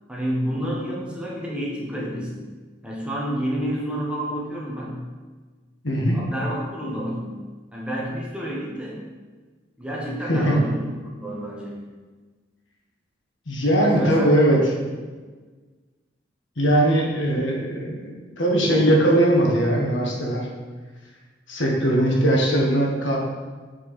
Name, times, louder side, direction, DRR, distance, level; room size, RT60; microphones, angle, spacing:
voice 1, 0.1-2.4 2.8-5.1 6.1-7.4 7.7-9.0 9.8-11.9 14.0-14.3 14.6-14.7, equal, 5° right, -4 dB, 1.2 m, -29 dB
voice 2, 5.8-6.2 10.3-10.5 13.5-14.7 16.6-20.5 21.5-23.2, right 1 dB, 75° left, -2 dB, 1.6 m, -20 dB
7.5 x 4.8 x 4.3 m, 1.4 s
head